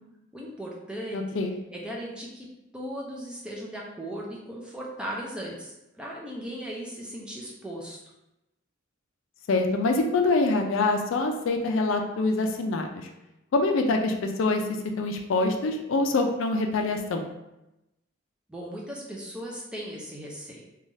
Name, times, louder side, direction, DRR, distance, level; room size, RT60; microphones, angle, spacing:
voice 1, 0.3-1.2 1.7-2.5 2.7-8.0 18.5-20.7, equal, 5° right, -3 dB, 0.4 m, -37 dB
voice 2, 1.1-1.5 9.5-13.1 13.5-14.6 15.0-17.3, left 3 dB, 70° left, 4 dB, 0.4 m, -25 dB
3.1 x 2.3 x 2.6 m, 0.92 s
head